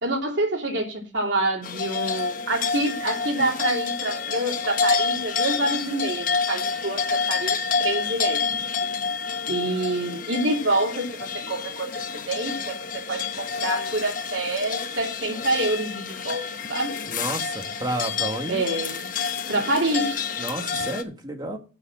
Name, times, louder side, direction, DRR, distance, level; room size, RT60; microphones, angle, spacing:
voice 1, 0.0-8.4 9.5-16.9 18.5-19.1 19.5-20.3, right 2 dB, 90° right, 3.0 m, -27 dB
sound 1, 1.6-21.0, left 5 dB, 50° left, 1.1 m, -28 dB
voice 2, 17.1-18.6 20.4-21.6, right 1 dB, 20° right, 1.9 m, -31 dB
7.5 x 6.6 x 7.4 m
head